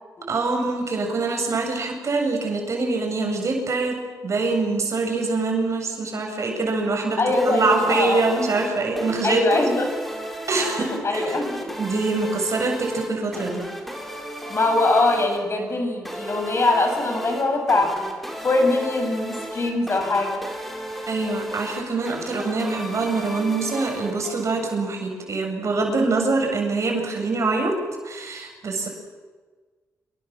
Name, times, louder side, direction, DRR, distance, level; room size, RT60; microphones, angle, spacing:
voice 1, 0.3-7.2 7.5-9.6 10.5-11.3 11.8-13.6 21.1-27.8 28.0-28.9, right 3 dB, 55° right, 2 dB, 8.0 m, -24 dB
voice 2, 7.2-8.2 9.2-9.9 10.6-11.7 14.5-17.9 18.4-20.4, left 2 dB, 45° left, 4 dB, 7.3 m, -22 dB
sound 1, 7.3-24.8, equal, ahead, 5.9 m, -35 dB
27.5 x 24.0 x 7.5 m, 1.4 s
cardioid pair, 65°, 6 cm